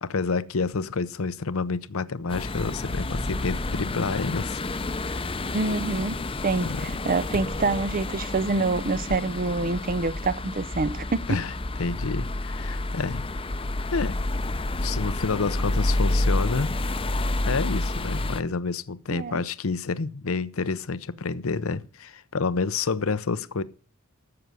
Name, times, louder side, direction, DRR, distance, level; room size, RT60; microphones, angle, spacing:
voice 1, 0.0-4.6 5.0-5.2 6.6-6.8 11.3-11.5 11.8-13.3 13.9-14.2 14.8-16.7 17.4-23.6, left 4 dB, 75° left, 0.7 m, -29 dB
sound 1, 2.3-18.4, left 2 dB, 25° left, 0.7 m, -29 dB
voice 2, 5.5-11.4 19.1-19.4, right 3 dB, 40° right, 0.6 m, -26 dB
14.5 x 6.9 x 6.2 m
head